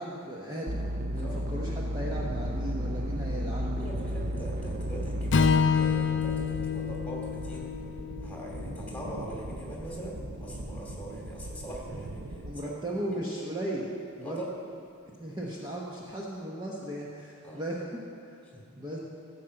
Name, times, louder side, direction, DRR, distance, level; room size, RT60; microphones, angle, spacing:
voice 1, 0.0-3.9 12.4-13.9 14.2-14.4 15.1-18.0 18.3-18.4 18.8-19.0, right 1 dB, 20° right, -4 dB, 1.1 m, -36 dB
sound 1, 0.7-5.5, equal, 40° right, 0.6 m, -32 dB
sound 2, 2.0-12.5, right 1 dB, 65° right, 0.8 m, -40 dB
voice 2, 3.7-7.7 8.2-12.2 14.2-14.5 17.4-17.6 18.5-18.6, right 1 dB, 5° left, -3 dB, 2.4 m, -41 dB
Strum, 5.3-9.6, left 6 dB, 60° left, 0.5 m, -28 dB
14.0 x 5.8 x 7.7 m, 2.4 s
head